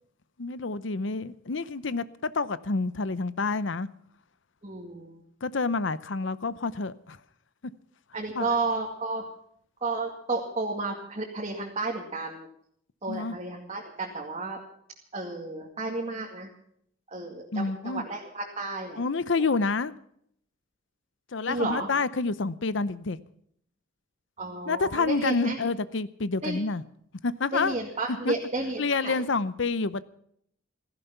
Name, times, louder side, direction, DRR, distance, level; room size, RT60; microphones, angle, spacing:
voice 1, 0.4-3.9 5.4-7.2 8.3-8.5 13.1-13.4 17.5-18.0 19.0-20.0 21.3-23.2 24.7-26.8 27.2-27.8 28.1-28.3 28.8-30.0, left 4 dB, 65° left, 0.7 m, -28 dB
voice 2, 4.6-5.2 8.1-9.2 9.8-12.5 13.0-14.6 15.1-16.5 17.1-19.0 21.5-21.9 24.4-25.6 26.4-26.6 27.5-29.2, right 3 dB, 35° right, 2.3 m, -32 dB
16.5 x 15.0 x 5.8 m
head